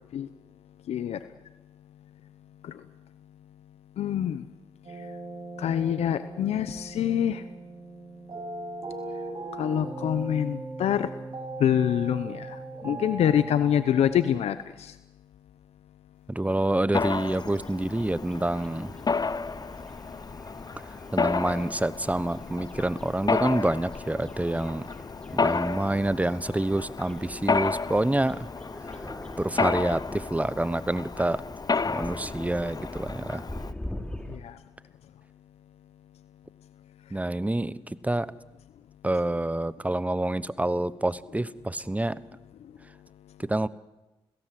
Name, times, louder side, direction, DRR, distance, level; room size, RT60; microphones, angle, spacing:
voice 1, 0.9-1.2 2.6-2.7 4.0-4.4 5.6-7.4 9.6-11.1 11.6-12.6 12.8-14.9 34.3-34.5, left 10 dB, 85° left, 12 dB, 0.8 m, -25 dB
sound 1, 4.8-14.3, right 2 dB, 50° right, 6.8 m, -39 dB
voice 2, 16.3-19.0 20.8-24.9 25.3-28.5 29.4-31.4 31.9-33.4 37.1-38.3 39.0-42.2 43.4-43.7, right 1 dB, 15° right, 17 dB, 1.1 m, -27 dB
sound 2, 16.6-34.4, left 1 dB, 10° left, 3.7 m, -44 dB
Mechanisms, 16.9-33.7, left 4 dB, 40° left, 0.9 m, -31 dB
26.5 x 17.0 x 7.7 m, 1.0 s
cardioid pair, 55°, 11 cm